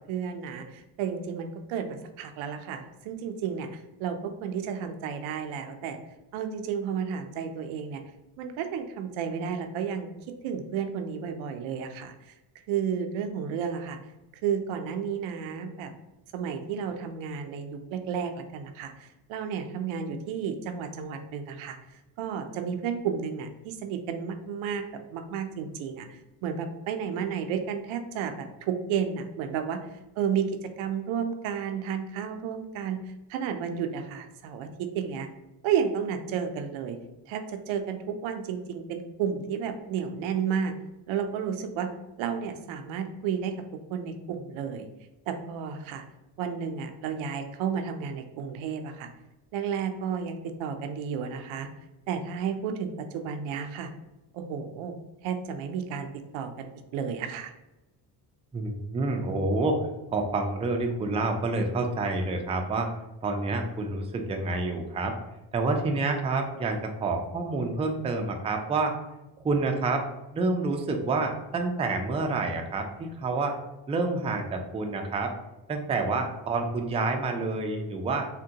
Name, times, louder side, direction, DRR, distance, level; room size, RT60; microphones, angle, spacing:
voice 1, 0.1-6.0 6.3-8.0 8.4-10.1 10.4-12.1 12.7-14.0 14.4-15.9 16.3-21.8 22.2-24.8 25.1-29.8 30.2-30.5 30.8-33.0 33.3-35.3 35.6-37.0 37.3-37.4 37.7-40.7 41.1-41.9 42.2-43.5 43.9-44.9 45.3-46.0 46.4-49.1 49.5-51.7 52.1-53.9 54.3-55.0 55.2-56.1 56.3-57.5, right 7 dB, 85° right, 6 dB, 0.5 m, -32 dB
voice 2, 58.5-59.8 60.1-62.9 63.2-65.2 65.5-69.0 69.4-70.0 70.3-73.6 73.9-75.3 75.7-78.3, right 3 dB, 15° right, 3 dB, 0.3 m, -28 dB
3.5 x 2.2 x 2.7 m, 0.96 s
cardioid pair, 85°, 46 cm